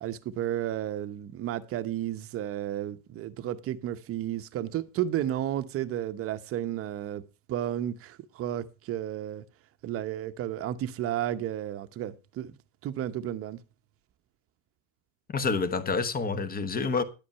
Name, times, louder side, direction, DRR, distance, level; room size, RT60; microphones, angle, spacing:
voice 1, 0.0-7.2 7.5-9.4 9.8-12.5 12.8-13.6, right 11 dB, 35° right, 0.9 m, -32 dB
voice 2, 15.3-17.0, left 4 dB, 20° left, 1.3 m, -28 dB
11.0 x 8.5 x 5.6 m
supercardioid pair, 140°, 41 cm